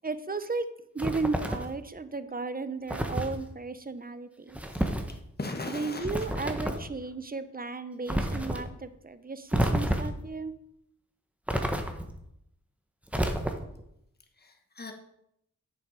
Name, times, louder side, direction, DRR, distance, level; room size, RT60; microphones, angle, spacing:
voice 1, 0.0-0.6 0.9-4.6 5.7-10.5, right 3 dB, 30° right, 12 dB, 0.7 m, -34 dB
sound 1, 1.0-1.8 2.9-3.4 4.5-5.1 6.0-6.9 8.1-8.6 9.5-10.2 11.5-12.2 13.1-13.8, right 1 dB, 5° right, 1.1 m, -29 dB
voice 2, 5.4-6.3 14.4-14.9, left 2 dB, 30° left, 3 dB, 1.3 m, -38 dB
8.5 x 7.0 x 5.0 m, 0.77 s
wide cardioid pair, 90°, 32 cm